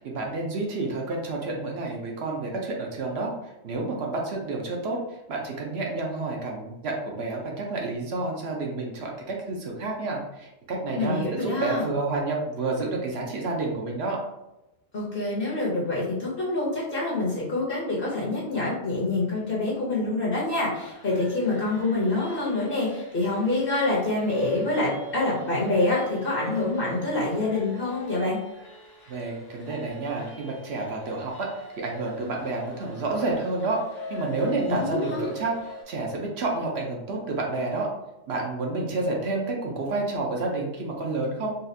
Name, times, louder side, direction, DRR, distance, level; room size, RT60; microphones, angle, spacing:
voice 1, 0.0-3.3 3.6-5.0 5.3-14.2 29.1-31.5 31.8-35.5 35.9-37.9 38.3-41.6, right 3 dB, 60° right, -1 dB, 0.8 m, -29 dB
voice 2, 10.9-11.8 14.9-28.4 34.7-35.3, left 2 dB, 50° left, -5 dB, 0.9 m, -26 dB
sound 1, 20.7-35.8, right 1 dB, 30° left, 0.5 m, -40 dB
4.0 x 2.3 x 2.6 m, 0.93 s
omnidirectional pair, 1.4 m